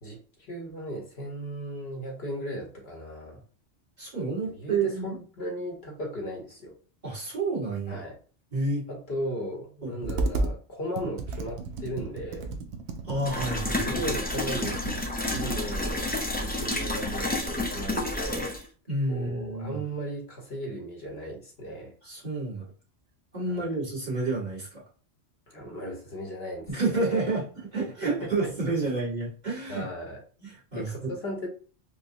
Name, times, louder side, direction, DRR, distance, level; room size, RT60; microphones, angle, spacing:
voice 1, 0.0-3.4 4.5-6.7 7.9-8.2 8.9-12.5 13.6-14.9 15.3-16.1 16.4-18.6 19.1-22.0 23.5-23.6 25.5-27.4 28.0-28.8 29.7-30.2 30.7-31.5, equal, 60° left, 0 dB, 1.2 m, -36 dB
voice 2, 4.0-5.1 7.0-8.0 8.5-8.9 9.8-10.1 13.0-13.8 18.9-19.8 22.0-22.6 23.3-24.8 26.7-27.4 27.7-29.9 30.4-30.9, right 3 dB, 40° right, -6 dB, 1.5 m, -29 dB
Computer keyboard, 10.0-10.6 11.0-15.9, right 2 dB, 70° right, 0.8 m, -33 dB
sound 1, 13.3-18.6, left 1 dB, 15° left, 0.3 m, -30 dB
4.7 x 2.0 x 2.6 m, 0.38 s
omnidirectional pair, 1.2 m